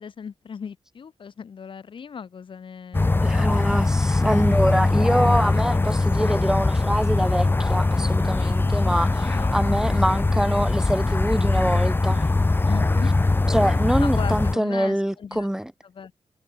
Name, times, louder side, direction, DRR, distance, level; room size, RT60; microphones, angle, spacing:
voice 1, 0.0-3.7 5.5-5.6 9.3-9.5 9.8-10.4 12.6-13.1 14.0-15.5 15.8-16.1, left 6 dB, 65° left, 2.8 m, -37 dB
sound 1, 2.9-14.5, left 2 dB, 20° left, 1.1 m, -21 dB
voice 2, 3.2-12.2 13.5-15.7, equal, 5° right, 1.2 m, -25 dB
cardioid pair, 80°, 9 cm